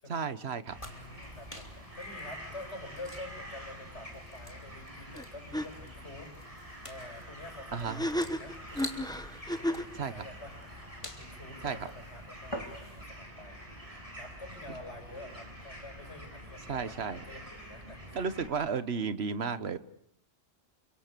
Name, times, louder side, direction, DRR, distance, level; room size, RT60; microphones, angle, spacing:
voice 1, 0.1-0.8 7.7-8.0 9.9-10.2 11.6-11.9 16.7-17.2 17.8-19.8, right 5 dB, 70° right, 13 dB, 1.5 m, -34 dB
sound 1, 0.7-18.5, equal, 30° right, 6.8 m, -47 dB
voice 2, 0.8-6.4 6.9-9.0 9.6-10.5 11.0-13.8 14.2-18.3, left 1 dB, 80° left, 5 dB, 6.9 m, -48 dB
sound 2, 0.8-13.2, equal, 25° left, 3.1 m, -49 dB
sound 3, 5.1-5.3 5.5-5.7 7.8-10.0, equal, 5° left, 1.3 m, -32 dB
30.0 x 26.0 x 6.8 m, 0.69 s
omnidirectional pair, 1.1 m